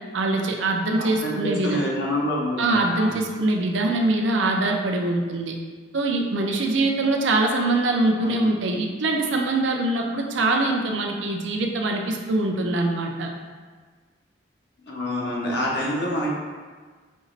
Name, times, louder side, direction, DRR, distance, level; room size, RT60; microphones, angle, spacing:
voice 1, 0.1-1.8 2.6-5.5 5.9-13.3, right 2 dB, 80° right, 2 dB, 0.5 m, -23 dB
voice 2, 1.0-3.2 8.2-8.5 14.9-16.4, equal, 60° left, -4 dB, 0.9 m, -27 dB
5.3 x 2.9 x 2.6 m, 1.5 s
head